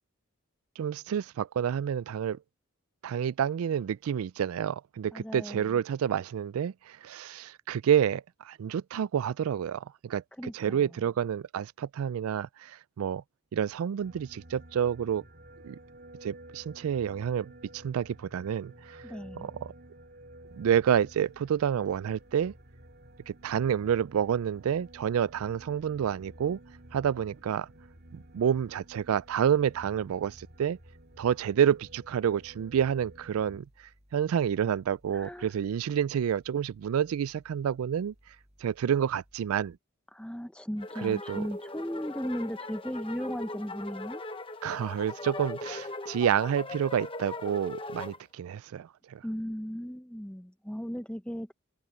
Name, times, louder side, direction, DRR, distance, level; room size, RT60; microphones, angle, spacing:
voice 1, 0.8-2.4 3.0-10.2 10.5-13.2 13.5-15.2 15.6-15.8 16.2-19.0 19.4-19.7 20.5-22.5 23.3-26.6 26.9-27.7 28.1-30.8 31.2-33.7 34.1-38.1 38.6-39.8 41.0-41.4 44.6-49.2, right 8 dB, 90° right, 0.3 m, -29 dB
voice 2, 5.1-5.8 10.4-10.8 19.0-19.5 35.1-35.5 40.1-44.2 49.2-51.5, equal, 5° left, 0.7 m, -36 dB
sound 1, 14.0-33.6, right 1 dB, 50° right, 4.4 m, -52 dB
sound 2, 20.4-39.8, equal, 30° right, 8.0 m, -63 dB
sound 3, 40.8-48.2, left 2 dB, 25° left, 1.0 m, -40 dB
head